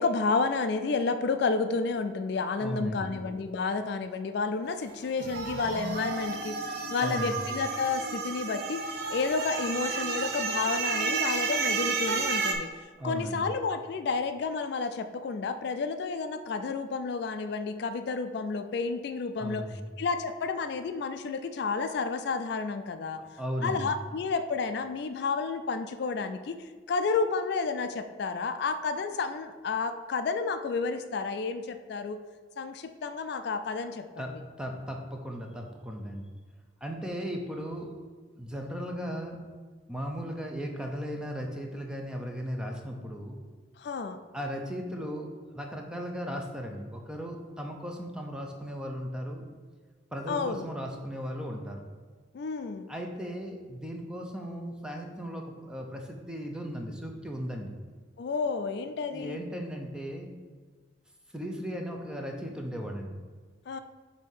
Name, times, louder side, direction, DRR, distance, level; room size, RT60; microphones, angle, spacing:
voice 1, 0.0-12.7 13.0-23.2 23.6-32.2 32.6-34.4 43.8-44.2 50.3-50.7 52.3-52.9 58.2-59.4 63.7-63.8, left 4 dB, 60° left, 9 dB, 0.3 m, -31 dB
voice 2, 2.6-3.0 7.0-7.4 13.0-13.5 19.4-19.9 23.4-23.9 34.2-36.3 36.8-37.9 38.3-39.4 39.9-43.4 44.3-45.3 45.5-49.5 50.1-51.8 52.9-57.8 59.1-60.3 61.3-63.2, equal, 5° right, 1 dB, 0.6 m, -36 dB
sound 1, 5.2-12.5, right 4 dB, 55° right, 0.7 m, -31 dB
7.6 x 2.8 x 5.4 m, 1.5 s
head